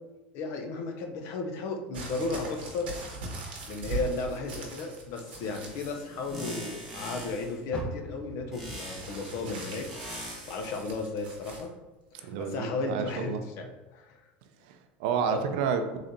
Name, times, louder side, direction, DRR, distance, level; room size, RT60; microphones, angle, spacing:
voice 1, 0.3-2.9 3.3-9.9 10.2-11.7 12.1-13.7 13.9-14.2 15.2-15.4, left 3 dB, 60° left, 4 dB, 0.7 m, -34 dB
sound 1, 1.9-6.0 6.3-6.9 9.0-11.7 12.5-12.6, right 3 dB, 90° right, 0.9 m, -41 dB
sound 2, 5.4-7.6 8.5-10.8, equal, 5° right, 1.1 m, -42 dB
Car, 7.7-11.0 11.4-12.7 13.2-13.3 13.9-14.0, equal, 15° left, 0.6 m, -44 dB
voice 2, 12.2-13.4 14.7-16.0, right 6 dB, 70° right, 7 dB, 0.5 m, -30 dB
3.9 x 3.2 x 2.6 m, 1.1 s
supercardioid pair, 100°, 5 cm